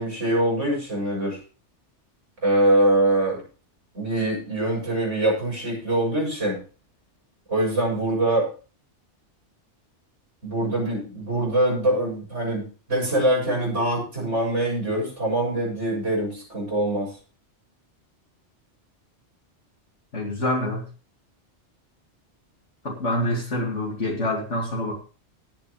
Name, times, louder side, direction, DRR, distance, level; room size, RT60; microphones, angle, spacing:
voice 1, 0.0-1.4 2.4-3.4 3.9-6.6 7.5-8.5 10.4-17.1, right 1 dB, 90° right, -2 dB, 7.9 m, -23 dB
voice 2, 20.1-20.9 22.8-24.9, left 1 dB, 85° left, -2 dB, 2.7 m, -26 dB
18.0 x 8.3 x 3.3 m, 0.36 s
omnidirectional pair, 1.2 m